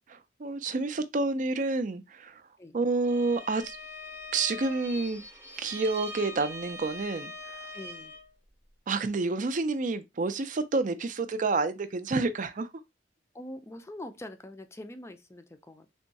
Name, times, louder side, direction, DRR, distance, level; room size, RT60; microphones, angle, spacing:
voice 1, 0.1-2.4 2.7-3.8 4.3-5.2 5.6-7.6 8.9-12.7, right 3 dB, 45° right, 0.4 m, -29 dB
Bowed string instrument, 3.0-8.3, left 1 dB, 15° right, 0.8 m, -42 dB
voice 2, 7.7-8.2 13.3-15.9, left 1 dB, 15° left, 0.4 m, -44 dB
3.6 x 2.3 x 4.0 m
head